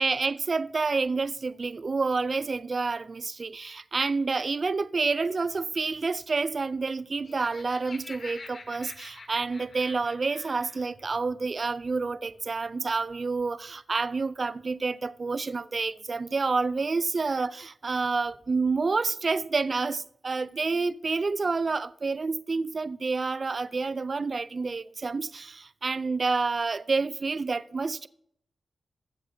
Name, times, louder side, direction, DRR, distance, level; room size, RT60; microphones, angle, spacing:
voice 1, 0.0-28.1, right 4 dB, 45° right, 0.4 m, -29 dB
Laughter, 7.0-10.9, left 3 dB, 60° left, 2.2 m, -46 dB
21.0 x 7.7 x 2.8 m
cardioid pair, 60°, 0 cm